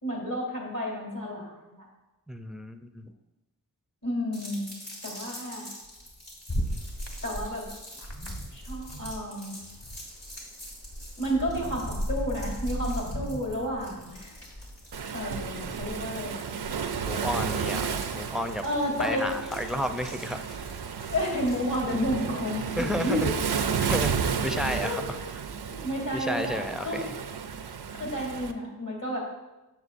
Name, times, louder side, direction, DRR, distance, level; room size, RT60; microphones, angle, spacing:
voice 1, 0.0-1.8 4.0-4.7 5.0-5.7 7.2-7.7 8.5-9.5 11.2-14.5 15.1-16.5 18.6-19.3 21.1-23.3 23.9-24.0 24.3-25.2 25.6-27.1 27.9-29.2, equal, 60° left, -3 dB, 2.7 m, -31 dB
voice 2, 2.3-3.1 17.0-18.6 19.0-20.7 22.8-23.4 23.9-24.2 24.4-25.2 26.1-27.2, equal, ahead, 7 dB, 0.4 m, -32 dB
sound 1, 4.3-23.4, left 1 dB, 80° left, 2.5 m, -47 dB
sound 2, 6.5-9.3 9.6-16.8, equal, 40° left, 1.1 m, -36 dB
Waves surf, 14.9-28.5, right 6 dB, 90° right, 0.5 m, -32 dB
8.1 x 7.1 x 2.5 m, 1.0 s
wide cardioid pair, 50°, 38 cm